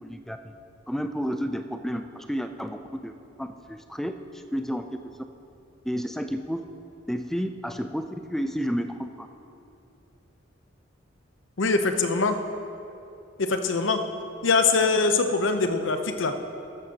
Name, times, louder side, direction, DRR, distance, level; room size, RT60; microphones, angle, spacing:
voice 1, 0.0-0.5 0.9-3.1 3.4-4.2 4.5-4.9 5.8-6.6 7.1-9.3, equal, ahead, 7 dB, 0.4 m, -31 dB
voice 2, 11.6-12.4 13.4-14.0 14.4-16.3, left 4 dB, 80° left, 7 dB, 0.8 m, -23 dB
14.0 x 12.5 x 2.9 m, 2.8 s
head